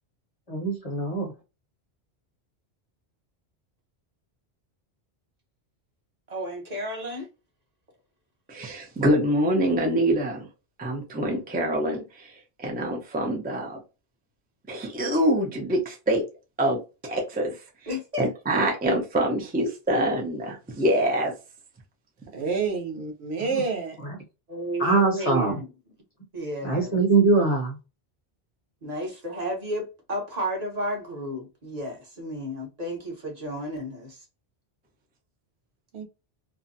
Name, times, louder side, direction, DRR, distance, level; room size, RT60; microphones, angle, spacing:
voice 1, 0.5-1.3 23.5-23.6 24.8-25.6 26.6-27.8, right 3 dB, 40° left, 0.8 m, -22 dB
voice 2, 6.3-7.3 17.9-18.3 24.5-25.7 26.3-27.0 28.8-34.2, equal, 40° right, 1.0 m, -32 dB
voice 3, 8.5-10.5 10.8-13.8 14.7-16.2 16.6-17.6 18.2-21.4, right 1 dB, 10° right, 0.5 m, -25 dB
voice 4, 22.3-24.0 35.9-36.0, right 5 dB, 80° right, 1.0 m, -28 dB
2.6 x 2.2 x 2.6 m
omnidirectional pair, 1.1 m